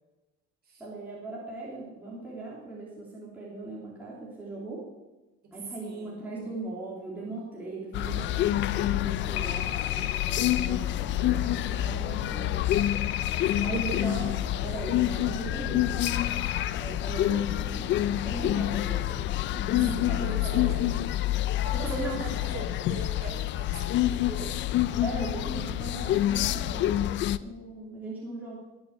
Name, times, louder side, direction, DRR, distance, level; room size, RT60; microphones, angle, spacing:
voice 1, 0.8-4.9 5.5-12.7 13.6-14.3 14.6-16.1 16.7-19.1 19.5-21.0 21.7-22.2 25.0-27.1 27.4-28.6, right 2 dB, 5° right, -7 dB, 3.2 m, -38 dB
voice 2, 5.8-6.2 13.4-14.3 19.8-20.8 21.6-24.6, right 3 dB, 30° right, 1 dB, 4.4 m, -42 dB
sound 1, 7.9-27.4, left 13 dB, 40° left, 0.5 m, -27 dB
sound 2, 9.4-10.7 12.7-14.0 16.1-16.7, left 13 dB, 85° left, 0.8 m, -33 dB
20.5 x 7.0 x 8.0 m, 1.1 s
cardioid pair, 165°, 30 cm